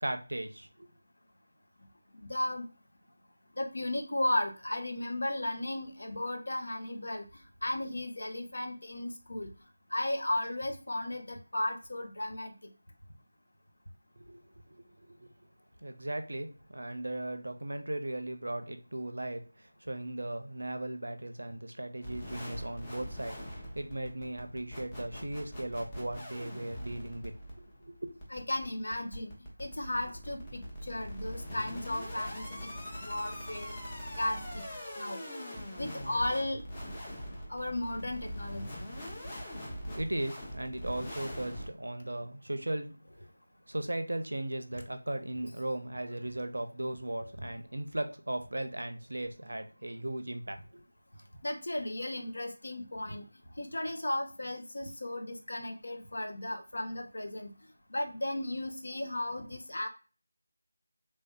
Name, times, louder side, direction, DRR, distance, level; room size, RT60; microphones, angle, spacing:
voice 1, 0.0-0.9 14.2-14.4 14.7-15.3 15.8-19.4 19.8-28.1 39.2-39.3 39.8-43.0 43.7-50.8, right 1 dB, 75° right, 0.5 m, -37 dB
voice 2, 2.2-2.6 3.6-7.3 7.6-9.5 9.9-12.5 28.3-29.3 29.6-32.6 33.0-33.7 34.2-34.4 35.0-35.2 35.8-36.6 37.5-38.7 51.4-53.2 53.6-57.5 57.9-59.9, left 1 dB, 65° left, 0.8 m, -35 dB
sound 1, 22.0-41.7, equal, 20° left, 0.8 m, -42 dB
3.2 x 2.7 x 2.3 m
figure-of-eight pair, 170°, 0 cm